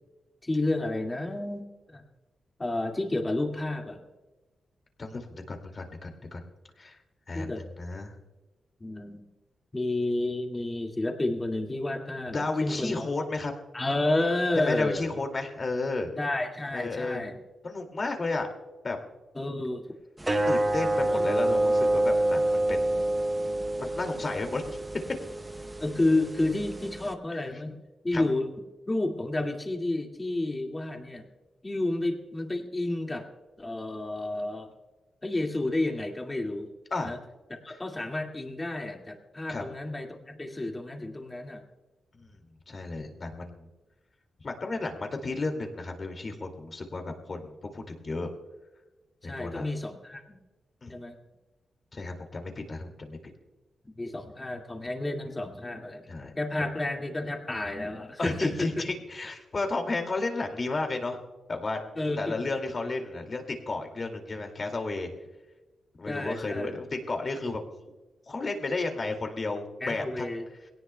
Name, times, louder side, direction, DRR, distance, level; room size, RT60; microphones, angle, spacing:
voice 1, 0.4-2.0 2.6-4.0 7.3-7.6 8.8-9.2 9.7-13.2 13.7-15.1 16.2-17.4 19.4-19.9 21.1-21.2 25.8-27.8 28.0-28.5 28.9-31.3 31.6-33.3 33.6-34.7 35.2-36.7 37.0-37.2 37.6-41.6 49.2-50.4 50.9-51.2 54.0-56.1 56.4-58.8 62.0-62.4 66.1-66.7 69.8-70.5, left 2 dB, 20° left, 1 dB, 2.1 m, -30 dB
voice 2, 5.0-6.4 6.8-7.0 7.3-8.1 12.3-13.5 14.6-16.1 16.7-17.2 17.6-18.5 18.8-19.0 20.5-23.0 23.8-24.8 28.1-28.2 36.9-37.2 37.7-37.8 39.5-39.6 42.1-43.7 44.4-48.3 49.2-49.7 50.8-50.9 51.9-53.2 56.1-56.3 58.2-61.2 61.5-61.8 62.2-65.1 66.0-67.6 68.3-70.3, left 3 dB, 35° left, 4 dB, 2.3 m, -33 dB
sound 1, 20.2-27.1, right 1 dB, 15° right, 0.7 m, -27 dB
22.5 x 17.5 x 2.2 m, 1.1 s
wide cardioid pair, 125°, 0 cm